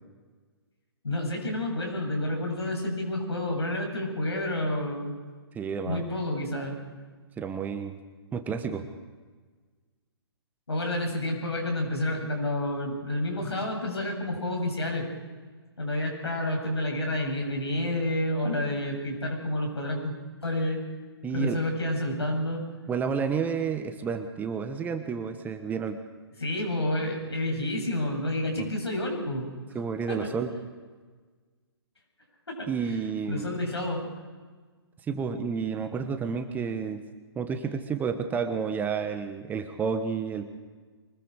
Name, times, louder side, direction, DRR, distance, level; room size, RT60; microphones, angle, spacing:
voice 1, 1.0-5.1 5.8-6.7 10.7-15.1 15.8-20.1 20.4-20.8 21.3-22.6 26.4-29.5 30.1-30.3 32.5-33.0 33.3-34.0, left 1 dB, 75° left, 1 dB, 7.9 m, -29 dB
voice 2, 5.5-6.0 7.4-8.0 8.3-8.8 21.2-21.6 22.9-26.0 28.6-28.7 29.7-30.6 32.7-33.5 35.1-37.0 37.3-40.4, right 6 dB, 10° right, 7 dB, 1.2 m, -30 dB
24.5 x 21.0 x 5.0 m, 1.4 s
figure-of-eight pair, 130°, 14 cm